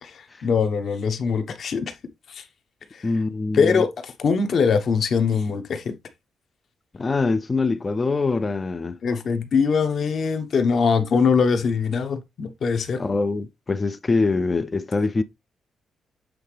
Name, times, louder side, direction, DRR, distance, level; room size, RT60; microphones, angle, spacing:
voice 1, 0.0-1.9 2.3-2.4 2.9-3.1 3.5-5.9 9.0-13.0, left 5 dB, 50° left, 1.1 m, -22 dB
voice 2, 3.0-3.8 6.9-9.0 13.0-15.2, left 3 dB, 25° left, 0.5 m, -24 dB
7.9 x 4.0 x 3.3 m
cardioid pair, 140°, 0 cm